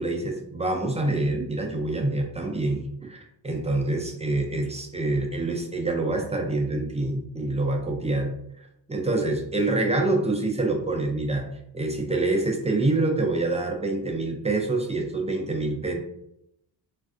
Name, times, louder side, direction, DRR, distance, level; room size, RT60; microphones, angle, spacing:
voice 1, 0.0-11.4 11.7-15.9, right 2 dB, 15° right, 1 dB, 0.3 m, -26 dB
3.3 x 2.4 x 2.3 m, 0.77 s
cardioid pair, 115°, 46 cm